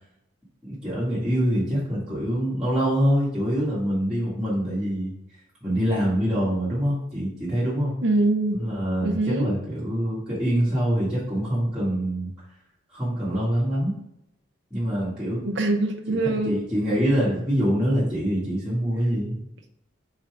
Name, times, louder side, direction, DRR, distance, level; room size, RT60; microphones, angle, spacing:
voice 1, 0.6-5.1 5.6-7.9 8.5-12.3 12.9-14.0 14.7-15.4 16.1-19.4, equal, 5° right, -11 dB, 2.0 m, -25 dB
voice 2, 8.0-8.6 9.0-9.5 15.4-16.6, right 2 dB, 65° right, 4 dB, 0.7 m, -23 dB
5.8 x 4.5 x 3.6 m, 0.81 s
head